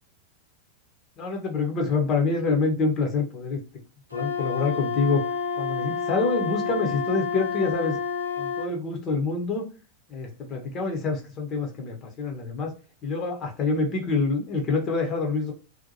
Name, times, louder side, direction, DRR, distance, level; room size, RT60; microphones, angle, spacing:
voice 1, 1.2-3.6 4.1-5.2 5.6-8.0 8.4-9.6 10.1-12.7 13.0-15.5, left 4 dB, 30° left, 2 dB, 0.7 m, -26 dB
Wind instrument woodwind instrument, 4.1-8.7, left 5 dB, 85° left, 0.4 m, -29 dB
2.7 x 2.1 x 2.8 m, 0.34 s
figure-of-eight pair, 90°, 0 cm